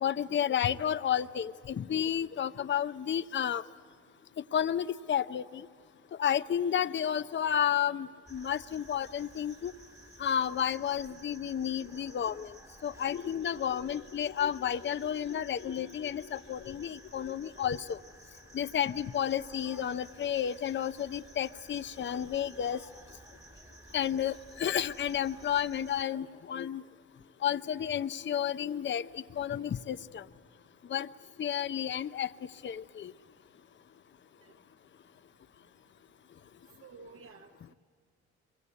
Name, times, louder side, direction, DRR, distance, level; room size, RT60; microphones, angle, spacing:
voice 1, 0.0-3.6 4.5-5.6 6.2-9.7 10.2-12.5 12.8-18.0 18.5-22.8 23.9-26.8 27.4-29.1 29.4-30.2 30.9-31.1 31.4-32.3 32.6-33.1, left 9 dB, 40° left, 13 dB, 0.7 m, -31 dB
sound 1, 8.3-26.0, right 1 dB, 10° right, 1.4 m, -54 dB
voice 2, 36.8-37.7, right 4 dB, 45° right, 5 dB, 1.3 m, -52 dB
25.0 x 23.5 x 8.3 m, 2.2 s
cardioid pair, 90°, 30 cm